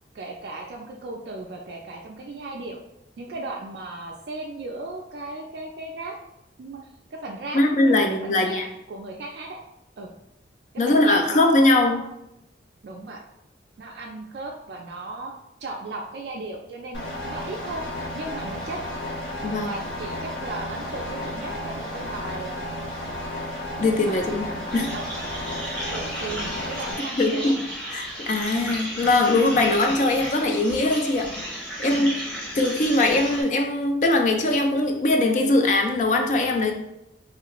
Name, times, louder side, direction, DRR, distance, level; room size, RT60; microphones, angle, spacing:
voice 1, 0.1-2.8 3.2-6.1 6.6-6.8 7.1-9.6 10.0-10.1 10.9-12.1 12.8-13.2 13.8-15.3 15.6-17.8 18.1-18.8 19.6-22.6 24.0-25.0 25.9-27.6 31.8-32.1, right 2 dB, 60° right, 0 dB, 0.3 m, -36 dB
voice 2, 7.5-8.7 10.8-12.0 19.4-19.8 23.8-24.9 27.2-27.6 27.9-31.3 31.8-32.1 32.5-36.7, left 2 dB, 40° left, 4 dB, 0.3 m, -21 dB
sound 1, 16.9-26.9, left 1 dB, 70° left, 0.9 m, -33 dB
sound 2, 24.7-33.4, equal, 5° left, 0.7 m, -34 dB
3.0 x 2.4 x 2.9 m, 0.83 s
head